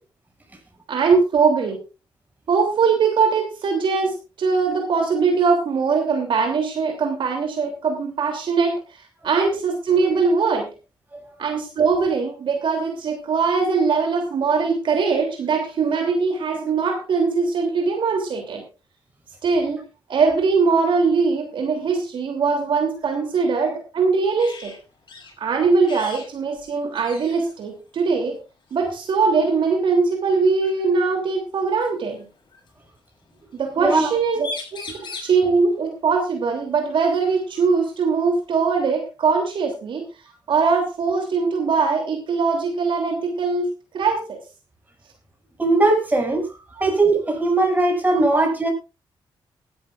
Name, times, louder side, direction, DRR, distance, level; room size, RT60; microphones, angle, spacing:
voice 1, 0.9-1.8 2.5-8.7 9.2-10.7 11.4-18.6 19.4-19.8 20.1-24.7 25.4-28.4 28.7-32.3 33.5-40.1 40.5-43.7 43.9-44.4 48.1-48.4, right 4 dB, 65° right, 3 dB, 3.2 m, -21 dB
sound 1, 24.4-24.8 25.1-25.3 25.8-26.3 26.6-26.7 26.9-27.5 28.7-28.9 30.6-30.7 31.8-32.7 34.1-34.2 34.4-35.4 37.3-37.4 37.9-38.9, left 3 dB, 55° left, 6.9 m, -37 dB
voice 2, 33.8-34.1 45.6-46.5 46.8-48.7, right 2 dB, 20° right, 2 dB, 6.6 m, -19 dB
18.0 x 13.0 x 2.5 m, 0.30 s
cardioid pair, 80°, 9 cm